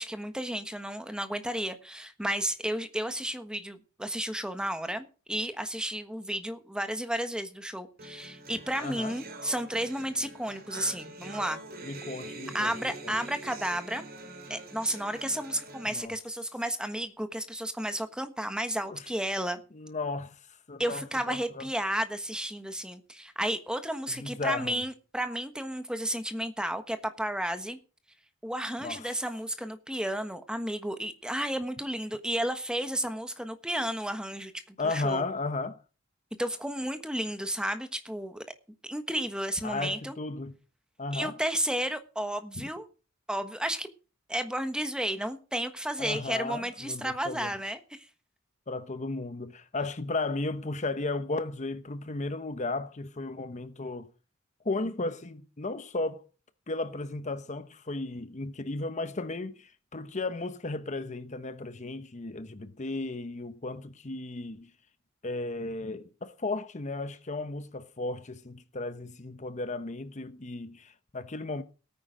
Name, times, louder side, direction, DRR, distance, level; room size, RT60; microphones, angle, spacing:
voice 1, 0.0-11.6 12.5-14.1 14.5-19.6 20.8-27.8 28.4-35.3 36.4-38.4 38.8-40.2 41.1-42.9 43.3-43.9 44.3-48.1, right 1 dB, 5° right, 1.3 m, -32 dB
sound 1, 8.0-16.0, right 2 dB, 50° right, 3.0 m, -44 dB
voice 2, 8.8-9.2 11.8-13.2 15.9-16.1 18.9-19.0 19.7-21.7 24.1-24.8 28.8-29.1 34.8-35.8 39.6-40.5 41.0-41.4 42.6-42.7 46.0-47.5 48.7-54.1 54.6-56.2 56.7-64.7 65.2-71.6, left 3 dB, 35° left, 0.9 m, -35 dB
17.5 x 9.6 x 5.1 m
head